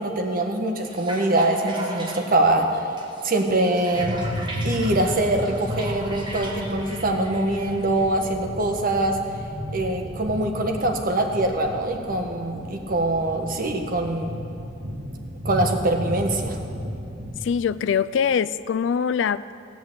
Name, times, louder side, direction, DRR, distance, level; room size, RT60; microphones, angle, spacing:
voice 1, 0.0-2.8 3.2-4.2 4.6-9.4 9.7-14.3 15.4-16.6, right 1 dB, 50° right, 3 dB, 1.3 m, -23 dB
sound 1, 0.8-8.1, right 1 dB, 25° right, 1.6 m, -38 dB
sound 2, 3.9-17.4, equal, 90° right, 1.8 m, -33 dB
voice 2, 17.4-19.5, left 7 dB, 75° left, 16 dB, 0.4 m, -23 dB
16.5 x 6.1 x 8.5 m, 2.8 s
head